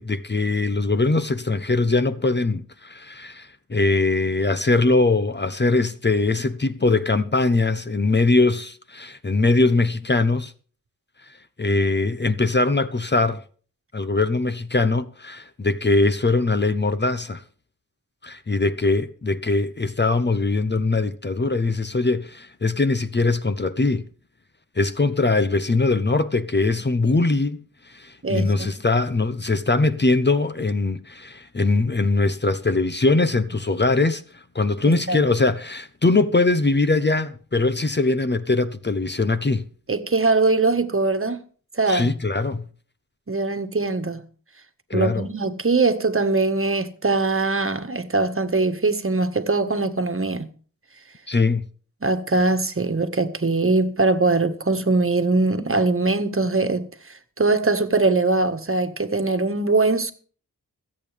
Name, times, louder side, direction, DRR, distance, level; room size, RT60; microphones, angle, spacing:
voice 1, 0.0-10.5 11.6-13.4 13.9-17.4 18.2-24.1 24.8-39.7 41.9-42.7 44.9-45.3 51.3-51.7, left 3 dB, 30° left, 0.9 m, -21 dB
voice 2, 28.2-28.7 34.9-35.2 39.9-41.4 41.7-42.2 43.3-44.3 44.9-50.5 52.0-60.1, right 3 dB, 40° right, 1.7 m, -22 dB
22.5 x 8.7 x 3.5 m
cardioid pair, 55°, 35 cm